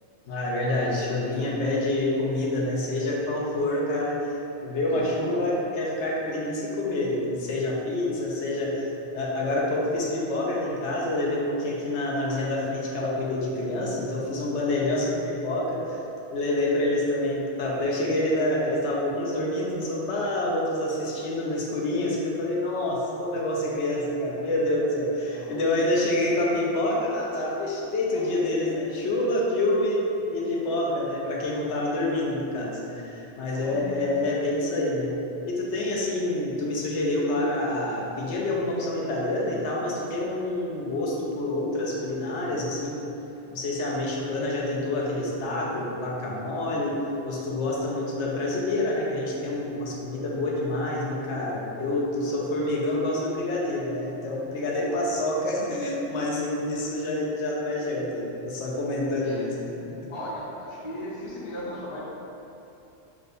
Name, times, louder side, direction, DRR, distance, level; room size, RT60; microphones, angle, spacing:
voice 1, 0.3-4.3 4.6-16.0 16.3-30.0 30.3-35.2 35.4-43.0 43.5-59.5 59.8-60.1, left 1 dB, 90° left, -3 dB, 0.9 m, -27 dB
voice 2, 4.9-5.3 25.2-25.6 25.9-26.1 28.1-28.5 30.7-30.8 33.5-34.1 54.7-55.1 59.2-59.5 60.1-62.0, left 1 dB, 35° left, -7 dB, 0.5 m, -38 dB
6.1 x 2.2 x 2.5 m, 2.9 s
omnidirectional pair, 1.2 m